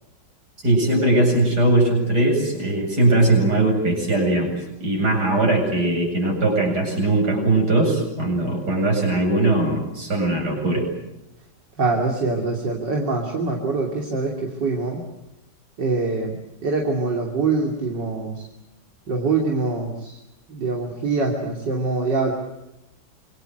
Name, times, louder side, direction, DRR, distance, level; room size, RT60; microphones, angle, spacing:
voice 1, 0.6-4.6 4.8-10.8, right 2 dB, 60° right, 2 dB, 8.7 m, -20 dB
voice 2, 11.8-15.0 15.8-16.4 16.6-18.4 19.1-20.2 20.5-22.3, right 3 dB, 80° right, 1 dB, 3.7 m, -24 dB
27.5 x 24.5 x 8.0 m, 0.90 s
omnidirectional pair, 1.9 m